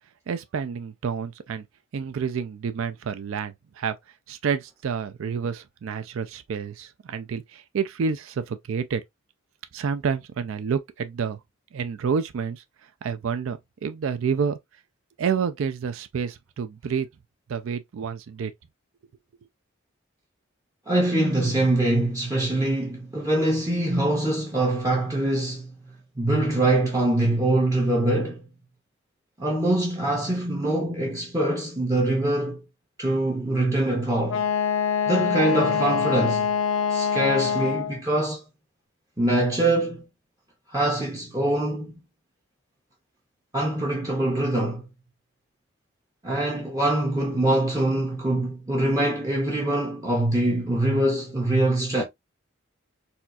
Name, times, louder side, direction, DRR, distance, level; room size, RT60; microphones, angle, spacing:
voice 1, 0.3-1.6 1.9-4.0 4.3-9.0 9.7-11.4 11.7-12.6 13.0-14.6 15.2-17.1 17.5-18.5, right 6 dB, 75° right, 0.4 m, -29 dB
voice 2, 20.9-25.7 26.2-28.4 29.4-32.6 33.0-34.4 35.1-36.5 36.9-38.4 39.2-40.0 40.7-41.9 43.5-44.8 46.2-52.0, right 1 dB, 15° right, 0.6 m, -24 dB
Wind instrument woodwind instrument, 34.3-38.0, left 7 dB, 65° left, 0.6 m, -24 dB
4.2 x 2.3 x 2.4 m
head